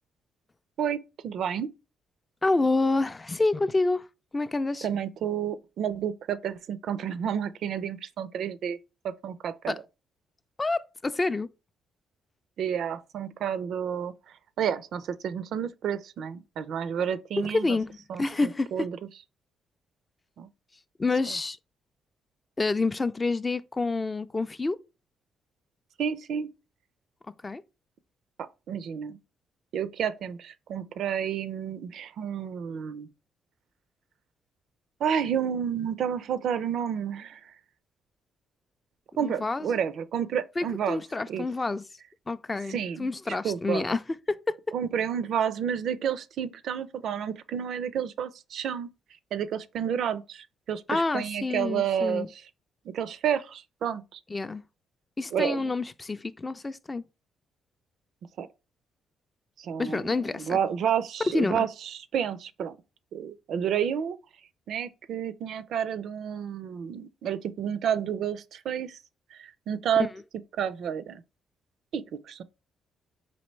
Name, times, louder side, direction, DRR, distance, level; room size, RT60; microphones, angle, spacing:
voice 1, 0.8-1.7 4.8-8.8 9.0-9.7 12.6-14.1 14.6-17.8 18.1-18.9 20.4-20.5 26.0-26.5 28.4-29.2 29.7-33.1 35.0-37.5 39.2-41.0 41.3-41.5 42.7-43.1 43.4-43.8 44.7-48.9 49.3-52.4 52.9-54.2 55.3-55.7 58.4-58.5 59.6-62.8 63.1-64.2 64.7-69.0 69.3-70.1 70.6-71.2 71.9-72.4, right 8 dB, 70° right, 0.4 m, -30 dB
voice 2, 2.4-4.1 4.3-4.9 9.7-9.8 10.6-11.5 17.4-18.7 21.0-21.6 22.6-24.8 27.4-27.6 39.2-39.7 40.6-41.8 42.3-44.0 44.3-44.6 50.9-52.3 54.3-54.6 55.2-57.0 59.8-60.6 61.3-61.7, left 3 dB, 25° left, 0.3 m, -28 dB
4.1 x 2.9 x 3.2 m
cardioid pair, 90°, 0 cm